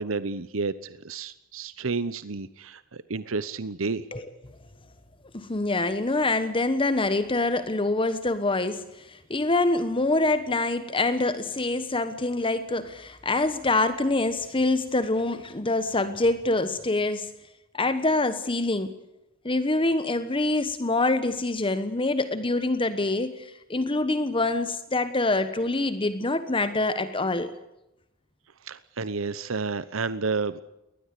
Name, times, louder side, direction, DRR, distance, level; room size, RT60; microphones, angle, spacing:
voice 1, 0.0-4.1 28.6-30.6, right 4 dB, 70° right, 15 dB, 0.9 m, -31 dB
voice 2, 5.3-17.3 17.7-18.9 19.4-27.5, left 2 dB, 25° left, 11 dB, 1.2 m, -25 dB
22.0 x 19.5 x 8.4 m, 0.90 s
head